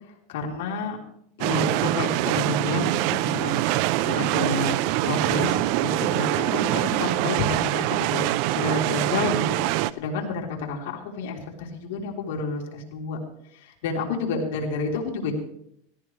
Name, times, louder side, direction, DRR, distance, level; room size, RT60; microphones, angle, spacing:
voice 1, 0.3-1.0 1.4-3.7 4.0-4.8 5.0-13.2 13.5-15.3, left 4 dB, 70° left, 0 dB, 3.5 m, -30 dB
sound 1, 1.4-9.9, right 16 dB, 50° right, 0.5 m, -24 dB
17.5 x 15.5 x 3.3 m, 0.70 s
supercardioid pair, 150°, 0 cm